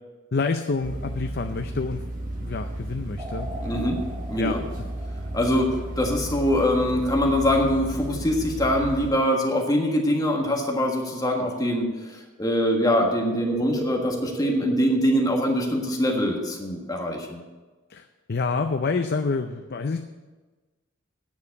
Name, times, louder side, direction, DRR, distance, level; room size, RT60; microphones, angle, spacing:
voice 1, 0.3-2.0 2.4-3.9 4.4-4.6 17.9-20.0, left 4 dB, 50° left, 6 dB, 0.5 m, -28 dB
sound 1, 0.8-9.1, right 1 dB, 40° right, 1.4 m, -34 dB
sound 2, 3.2-6.5 13.4-16.2, right 2 dB, 20° right, 0.8 m, -39 dB
voice 2, 3.6-4.0 4.3-4.6 5.3-17.4, equal, 20° left, 0 dB, 1.5 m, -23 dB
9.5 x 7.2 x 8.4 m, 1.3 s
head